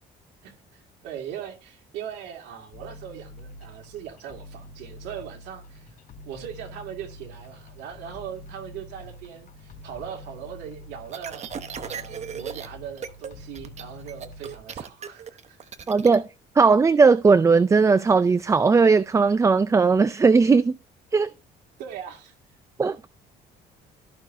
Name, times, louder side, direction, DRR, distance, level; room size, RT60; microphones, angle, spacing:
voice 1, 0.4-6.0 6.2-15.6 21.8-22.3, right 9 dB, 85° right, 2.4 m, -40 dB
sound 1, 2.7-14.6, left 1 dB, 50° left, 3.3 m, -45 dB
sound 2, 11.1-12.7 13.0-13.3 13.6-16.2, right 7 dB, 40° right, 1.0 m, -36 dB
voice 2, 15.9-16.2 16.6-20.7 21.1-21.3 22.8-23.0, right 4 dB, 20° right, 0.4 m, -18 dB
14.5 x 6.0 x 2.7 m
cardioid pair, 110°, 17 cm